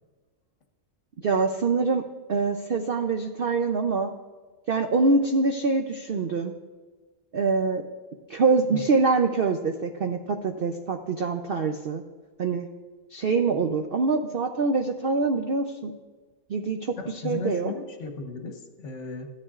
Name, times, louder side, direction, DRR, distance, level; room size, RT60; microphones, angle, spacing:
voice 1, 1.2-2.0 2.3-4.1 4.7-6.5 7.3-7.8 8.3-12.0 12.4-12.7 13.1-15.9 16.5-16.9 17.2-17.7, right 4 dB, 80° right, 5 dB, 0.5 m, -24 dB
voice 2, 17.0-19.3, left 4 dB, 55° left, 5 dB, 1.2 m, -35 dB
14.0 x 9.9 x 2.4 m, 1.3 s
omnidirectional pair, 1.7 m